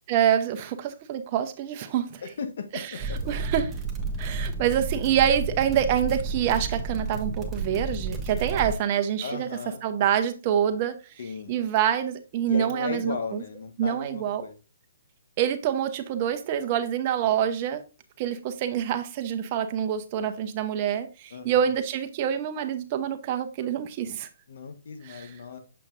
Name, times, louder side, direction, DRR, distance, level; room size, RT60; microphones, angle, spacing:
voice 1, 0.1-2.2 2.7-3.7 4.2-9.5 9.8-11.0 11.5-13.4 13.8-14.5 15.4-17.8 18.2-24.3 25.0-25.3, right 9 dB, 35° right, 0.8 m, -26 dB
voice 2, 2.2-3.4 9.2-9.8 11.2-11.5 12.5-14.6 21.3-21.5 24.5-25.6, left 5 dB, 65° left, 1.1 m, -36 dB
sound 1, 3.0-8.7, right 3 dB, 10° right, 1.1 m, -31 dB
6.7 x 5.7 x 2.6 m
hypercardioid pair, 150°, 0 cm